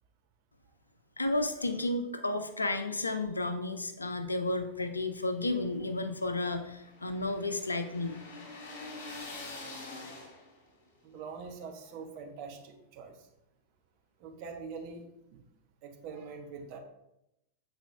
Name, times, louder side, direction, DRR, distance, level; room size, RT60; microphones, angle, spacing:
voice 1, 1.2-8.2, left 2 dB, 80° left, 9 dB, 0.5 m, -32 dB
sound 1, 5.2-10.7, left 2 dB, 55° left, 2.3 m, -46 dB
voice 2, 11.0-13.3 14.2-15.4 15.8-16.8, right 5 dB, 45° right, 2 dB, 1.2 m, -44 dB
8.2 x 4.3 x 3.2 m, 0.84 s
figure-of-eight pair, 90°, 0 cm